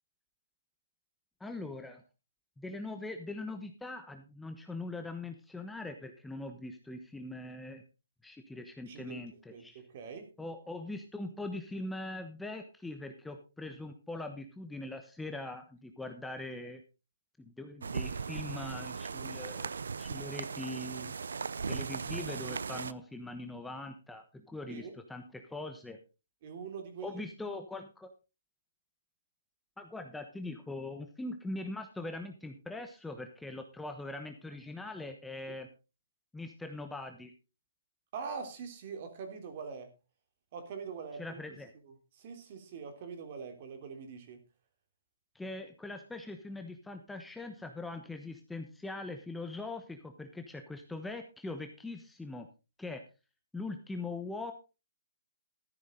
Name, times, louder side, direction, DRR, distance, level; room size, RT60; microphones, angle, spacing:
voice 1, 1.4-2.0 2.6-7.8 8.2-9.8 10.4-16.8 17.4-21.1 21.7-26.0 27.0-28.1 29.8-35.7 36.3-37.3 41.2-41.7 45.3-52.5 52.8-53.0 53.5-54.5, left 2 dB, 5° left, 5 dB, 1.1 m, -42 dB
voice 2, 8.9-9.2 9.5-10.3 24.7-24.9 26.4-27.2 35.5-35.6 38.1-39.9 40.5-41.4 41.8-44.4, right 5 dB, 45° right, 6 dB, 3.4 m, -43 dB
sound 1, 17.8-22.9, right 5 dB, 80° right, 0.6 m, -38 dB
13.5 x 11.0 x 3.9 m, 0.31 s
hypercardioid pair, 150°, 0 cm